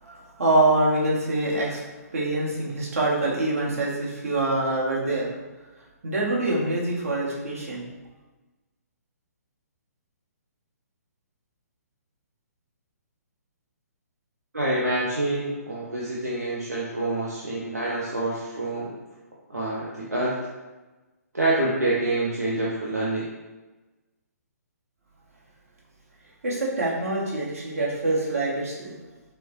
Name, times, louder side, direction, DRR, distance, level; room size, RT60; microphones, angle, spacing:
voice 1, 0.0-1.8 2.1-5.3 6.0-7.9 26.4-29.0, right 2 dB, 60° right, -4 dB, 1.3 m, -25 dB
voice 2, 14.5-18.9 19.5-20.4 21.3-23.3, right 2 dB, 75° right, -6 dB, 0.9 m, -27 dB
6.2 x 2.2 x 3.0 m, 1.2 s
figure-of-eight pair, 130°, 9 cm